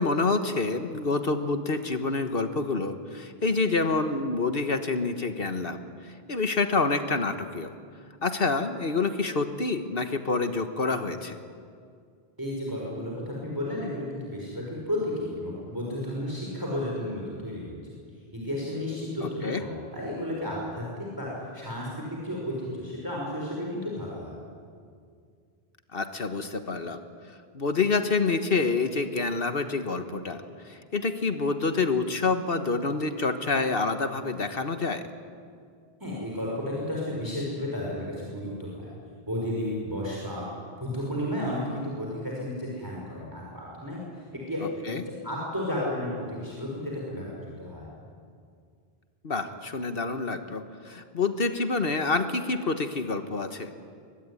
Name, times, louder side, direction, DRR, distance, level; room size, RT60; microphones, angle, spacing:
voice 1, 0.0-7.7 8.2-11.4 19.2-19.6 25.9-27.0 27.3-35.0 44.6-45.0 49.2-53.7, left 3 dB, 60° left, 8 dB, 1.5 m, -27 dB
voice 2, 12.4-17.8 18.3-21.3 21.5-24.4 36.0-38.9 39.3-40.4 40.8-44.0 44.3-44.6 44.9-47.9, left 1 dB, 20° right, -4 dB, 5.2 m, -33 dB
23.0 x 22.0 x 9.8 m, 2.2 s
omnidirectional pair, 1.1 m